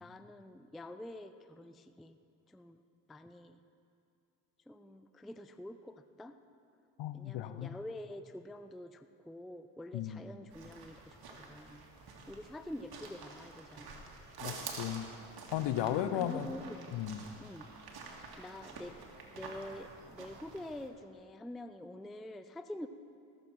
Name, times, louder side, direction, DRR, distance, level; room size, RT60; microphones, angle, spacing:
voice 1, 0.0-2.2 2.5-2.8 3.1-3.6 4.7-6.4 7.1-11.8 12.3-14.1 16.0-16.8 17.4-17.7 18.4-19.0 19.3-22.9, left 1 dB, ahead, 10 dB, 0.3 m, -47 dB
voice 2, 7.0-7.8 9.9-10.2 14.4-15.1 15.5-16.5 16.9-17.2, left 11 dB, 60° left, 11 dB, 0.9 m, -35 dB
sound 1, 10.5-20.9, right 4 dB, 50° right, 2.0 m, -49 dB
18.0 x 7.7 x 4.6 m, 2.6 s
hypercardioid pair, 55°, 49 cm